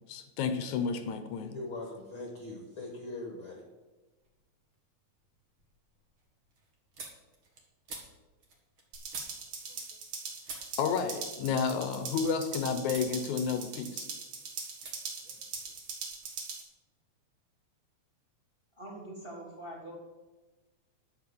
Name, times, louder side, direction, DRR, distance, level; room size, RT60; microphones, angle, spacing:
voice 1, 0.1-1.5 10.8-14.1, left 6 dB, 80° left, 8 dB, 2.3 m, -31 dB
voice 2, 1.5-3.6, left 2 dB, 50° left, 0 dB, 1.9 m, -41 dB
sound 1, 4.2-4.7 5.1-10.2 10.4-12.5 12.9-13.2 13.5-14.3 14.8-15.0 15.2-16.3, right 3 dB, 45° right, 2.6 m, -50 dB
sound 2, 8.9-16.6, right 4 dB, 75° right, 3.5 m, -41 dB
voice 3, 18.8-19.9, right 1 dB, 10° right, -2 dB, 3.1 m, -44 dB
11.0 x 8.0 x 6.9 m, 1.2 s
omnidirectional pair, 3.4 m